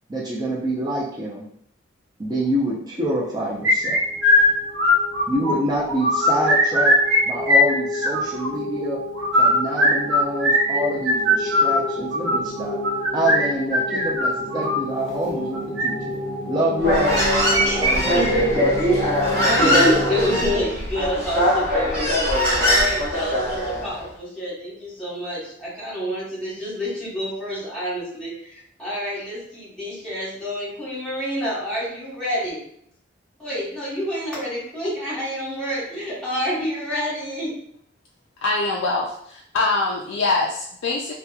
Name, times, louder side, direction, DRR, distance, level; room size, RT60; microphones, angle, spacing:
voice 1, 0.1-1.4 2.2-4.0 5.3-6.9 7.2-9.0 9.4-12.8 13.1-16.0 16.5-18.8, right 1 dB, 20° right, -6 dB, 0.4 m, -26 dB
sound 1, 3.6-5.5 5.9-7.2 7.4-8.5 9.2-14.8 15.5-15.9 17.1-17.9 18.2-18.3 18.7-18.8 19.4-19.8, left 1 dB, 70° right, 0.7 m, -19 dB
sound 2, 4.1-20.5, left 1 dB, 25° left, 0.6 m, -31 dB
Human voice, 16.8-23.9, equal, 50° right, 1.2 m, -21 dB
voice 2, 17.6-18.6 19.6-32.6 33.4-37.5, equal, 5° left, -11 dB, 1.1 m, -28 dB
voice 3, 38.4-41.1, left 3 dB, 80° left, -2 dB, 0.3 m, -23 dB
2.8 x 2.1 x 2.3 m, 0.68 s
head